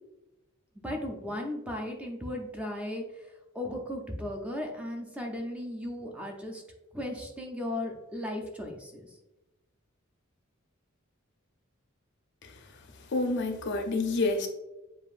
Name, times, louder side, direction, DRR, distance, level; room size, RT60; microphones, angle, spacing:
voice 1, 0.8-6.6 6.9-9.1, left 1 dB, 5° right, 1 dB, 0.5 m, -36 dB
voice 2, 12.4-14.5, left 3 dB, 55° left, 5 dB, 0.5 m, -30 dB
7.1 x 2.5 x 2.4 m, 0.98 s
head